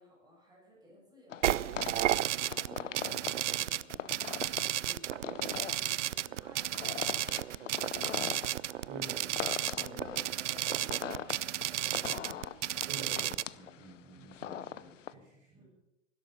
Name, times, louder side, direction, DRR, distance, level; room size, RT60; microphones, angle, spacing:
voice 1, 0.0-8.5 8.8-9.5 9.8-12.7 15.5-15.7, equal, 10° right, -2 dB, 7.2 m, -58 dB
sound 1, 1.3-15.1, left 10 dB, 75° left, 0.8 m, -41 dB
sound 2, 1.4-13.4, right 12 dB, 70° right, 0.5 m, -33 dB
voice 2, 8.9-10.2 12.9-15.7, right 2 dB, 40° right, 0 dB, 4.2 m, -50 dB
17.0 x 12.0 x 5.3 m, 0.92 s
figure-of-eight pair, 105°, 38 cm